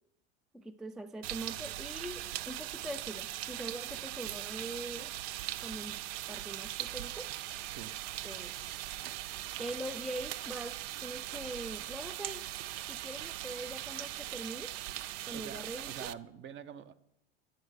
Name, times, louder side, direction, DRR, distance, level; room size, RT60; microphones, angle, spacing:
voice 1, 0.5-5.1 5.6-6.0 6.3-7.3 8.2-8.7 9.6-12.4 12.9-14.7 15.2-16.1, right 1 dB, ahead, 11 dB, 0.3 m, -43 dB
sound 1, 1.2-16.1, right 14 dB, 75° right, 0.5 m, -40 dB
voice 2, 15.3-16.9, right 8 dB, 40° right, 13 dB, 0.7 m, -46 dB
10.5 x 7.0 x 6.3 m, 0.84 s
supercardioid pair, 105°, 30 cm